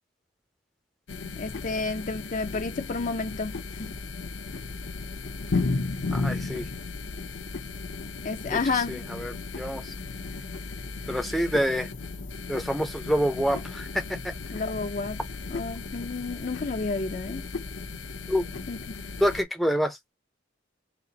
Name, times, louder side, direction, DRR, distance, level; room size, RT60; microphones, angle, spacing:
sound 1, 1.1-19.4, left 3 dB, 75° left, 0.8 m, -35 dB
voice 1, 1.3-3.9 8.2-9.0 14.5-15.2 15.5-17.4 18.7-19.0, left 4 dB, 45° left, 0.5 m, -31 dB
voice 2, 6.1-6.7 8.9-9.9 11.1-11.9 12.5-14.3 18.3-18.4 19.2-20.0, equal, ahead, 0.6 m, -27 dB
4.2 x 2.5 x 3.9 m
head